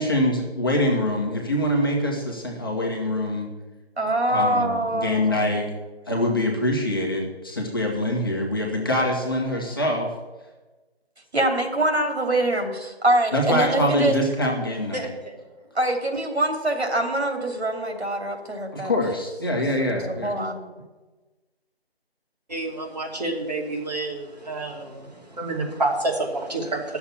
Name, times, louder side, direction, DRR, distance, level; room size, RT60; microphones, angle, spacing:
voice 1, 0.0-3.5 4.2-5.7 6.1-10.1 13.3-15.1 18.7-20.3, left 1 dB, 20° left, -2 dB, 1.3 m, -24 dB
voice 2, 4.0-5.5 11.3-14.2 15.7-18.9 19.8-20.7, right 1 dB, 85° right, 4 dB, 2.9 m, -24 dB
voice 3, 22.5-27.0, right 2 dB, 40° right, -1 dB, 2.7 m, -28 dB
11.0 x 7.1 x 9.2 m, 1.2 s
figure-of-eight pair, 175°, 32 cm